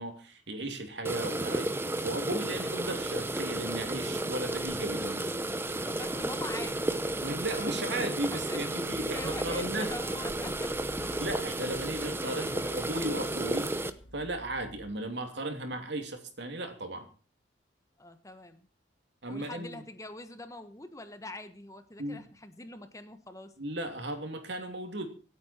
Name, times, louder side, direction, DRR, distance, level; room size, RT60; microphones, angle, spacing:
voice 1, 0.0-1.7 2.0-5.3 7.2-9.9 11.2-13.8 14.1-17.1 19.2-19.8 22.0-22.3 23.6-25.1, right 1 dB, 70° right, 5 dB, 2.9 m, -35 dB
sound 1, 1.0-13.9, right 1 dB, 10° right, 0.8 m, -33 dB
sound 2, 2.5-14.9, equal, 80° left, 3.4 m, -52 dB
voice 2, 5.9-6.9 8.3-8.6 9.0-10.7 12.3-12.7 18.0-18.7 19.3-23.5, left 2 dB, 15° left, 9 dB, 1.2 m, -44 dB
25.0 x 8.9 x 4.4 m, 0.37 s
head